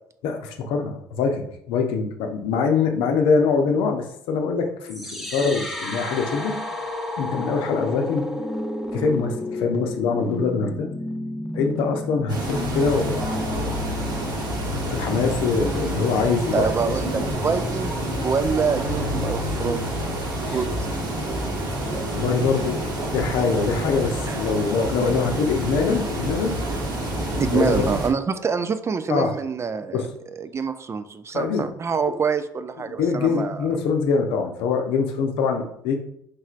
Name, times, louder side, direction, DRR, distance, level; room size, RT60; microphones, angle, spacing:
voice 1, 0.2-6.6 7.2-8.3 8.9-10.9 11.5-13.2 13.5-13.8 14.9-16.7 20.5-20.6 22.1-22.8 23.1-26.6 27.5-27.9 29.1-29.4 29.9-30.1 31.3-31.6 33.0-36.0, left 5 dB, 70° left, 4 dB, 0.6 m, -23 dB
sound 1, 4.9-20.9, left 2 dB, ahead, 0.9 m, -33 dB
sound 2, 12.3-28.1, right 1 dB, 50° right, 1.2 m, -28 dB
voice 2, 16.5-19.8 20.5-20.7 24.3-24.4 27.4-30.1 30.4-33.7, right 5 dB, 30° right, 11 dB, 0.3 m, -26 dB
4.6 x 3.0 x 2.4 m, 0.72 s
hypercardioid pair, 60°, 9 cm